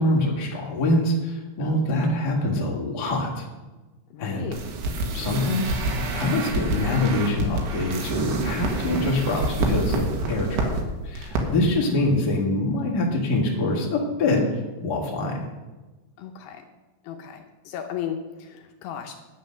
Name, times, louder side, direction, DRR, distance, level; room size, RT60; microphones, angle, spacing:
voice 1, 0.0-3.4 4.2-4.5 5.1-10.7 11.0-14.5 14.8-15.4, left 2 dB, 40° left, -2 dB, 1.5 m, -24 dB
voice 2, 1.6-1.9 4.1-4.6 11.9-12.0 16.2-16.6 17.1-19.1, left 9 dB, 80° left, 4 dB, 2.7 m, -35 dB
sound 1, 4.5-10.8 11.1-11.4 11.7-11.8, right 2 dB, 85° right, 3.9 m, -27 dB
10.0 x 8.5 x 6.5 m, 1.2 s
omnidirectional pair, 5.2 m